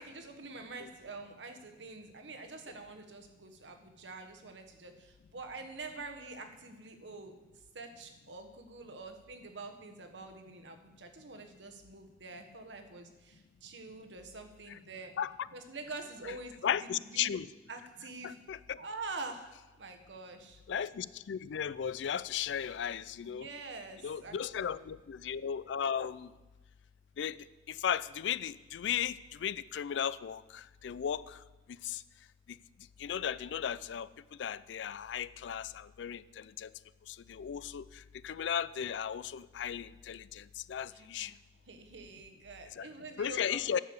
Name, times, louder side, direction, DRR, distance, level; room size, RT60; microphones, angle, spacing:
voice 1, 0.0-7.3 7.7-15.1 15.5-16.5 16.8-17.3 17.7-18.4 18.8-19.5 19.8-20.6 23.2-24.9 40.9-41.4 41.7-43.8, right 3 dB, 85° right, 6 dB, 1.2 m, -46 dB
voice 2, 15.2-15.5 16.6-17.5 18.2-18.8 20.7-23.5 24.0-26.3 27.2-27.4 27.7-31.4 31.8-32.0 33.0-34.1 34.4-36.7 37.1-37.8 38.2-41.3 42.8-42.9 43.2-43.8, left 8 dB, 85° left, 18 dB, 0.4 m, -35 dB
9.8 x 6.8 x 7.0 m, 1.1 s
head